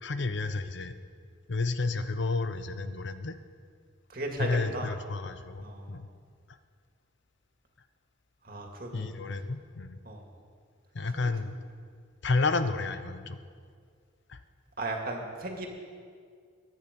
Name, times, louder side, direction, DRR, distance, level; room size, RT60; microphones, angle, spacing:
voice 1, 0.0-0.9 1.5-3.4 4.4-6.1 8.9-10.0 10.9-11.6 12.2-13.4 14.3-14.4, left 3 dB, 65° left, 10 dB, 0.7 m, -31 dB
voice 2, 4.1-4.9 5.6-5.9 8.5-9.1 10.0-10.2 11.1-11.3 14.8-15.7, right 2 dB, 45° right, 1 dB, 2.2 m, -36 dB
22.5 x 9.6 x 5.3 m, 2.1 s
head